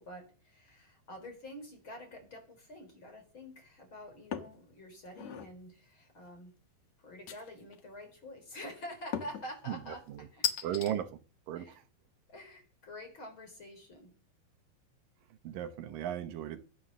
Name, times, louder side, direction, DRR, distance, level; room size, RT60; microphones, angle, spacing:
voice 1, 0.0-6.5 7.0-10.0 10.3-10.8 11.6-11.8 12.3-14.1, equal, 25° left, 5 dB, 4.6 m, -47 dB
sound 1, 4.3-4.6 5.1-5.5 7.3-7.8 9.1-9.5 10.4-10.9, left 9 dB, 80° left, 1.5 m, -36 dB
voice 2, 9.7-10.3 10.6-11.2 11.5-11.8 15.4-16.6, right 11 dB, 75° right, 8 dB, 2.1 m, -36 dB
22.0 x 9.3 x 6.7 m, 0.39 s
omnidirectional pair, 5.5 m